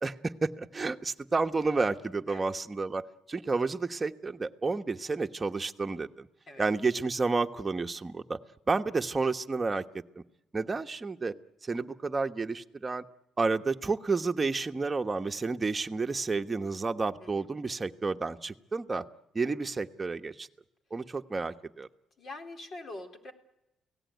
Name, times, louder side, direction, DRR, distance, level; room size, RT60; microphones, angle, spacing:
voice 1, 0.0-6.3 6.6-8.4 8.7-9.8 10.5-11.3 11.6-13.0 13.4-19.0 19.3-20.5 20.9-21.9, right 3 dB, 25° right, 5 dB, 1.2 m, -30 dB
voice 2, 22.2-23.3, left 2 dB, 50° left, 5 dB, 3.7 m, -43 dB
29.5 x 17.5 x 9.4 m, 0.95 s
cardioid pair, 90°, 0 cm